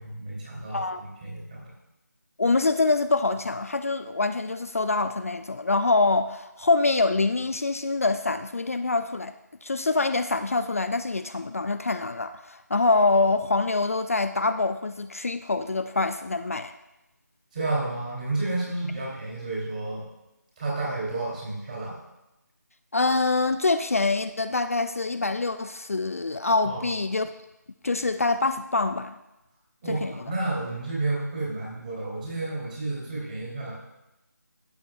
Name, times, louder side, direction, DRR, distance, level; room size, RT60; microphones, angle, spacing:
voice 1, 0.0-1.6 17.5-20.0 20.6-22.0 26.6-26.9 29.8-33.7, right 2 dB, 25° right, -6 dB, 3.1 m, -31 dB
voice 2, 2.4-9.3 9.6-16.7 22.9-27.3 27.8-29.1 29.9-30.1, left 3 dB, 50° left, 10 dB, 0.3 m, -25 dB
12.0 x 8.2 x 2.4 m, 0.96 s
figure-of-eight pair, 165°, 10 cm